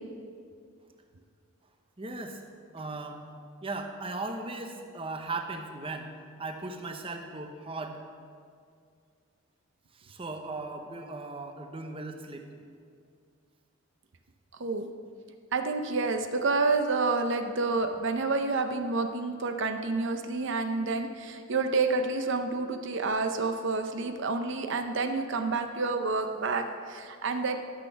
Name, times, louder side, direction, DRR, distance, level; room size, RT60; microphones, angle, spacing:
voice 1, 2.0-2.4 2.7-3.2 3.6-6.1 6.4-8.0 9.9-12.6, right 3 dB, 25° right, 5 dB, 0.8 m, -37 dB
voice 2, 15.5-27.6, right 3 dB, 55° right, 7 dB, 0.6 m, -29 dB
12.5 x 6.3 x 5.9 m, 2.2 s
head